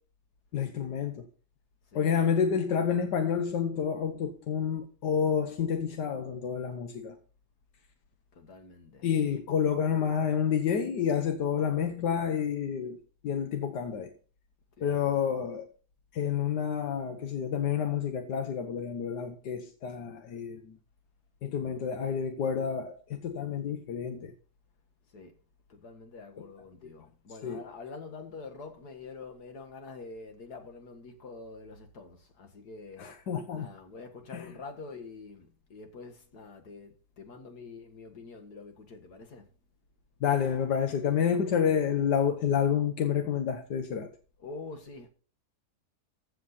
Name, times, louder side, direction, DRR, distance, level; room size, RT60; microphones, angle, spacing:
voice 1, 0.5-1.2 1.9-7.2 9.0-13.0 13.2-14.1 14.8-15.7 16.1-20.7 21.4-24.3 27.4-27.6 33.0-33.7 34.3-34.5 40.2-44.1, left 7 dB, 85° left, 1.7 m, -29 dB
voice 2, 1.9-2.2 8.3-9.4 14.8-15.4 25.1-25.4 25.7-33.1 33.5-39.5 44.4-45.1, left 4 dB, 70° left, 2.3 m, -46 dB
15.0 x 7.9 x 4.2 m
omnidirectional pair, 1.8 m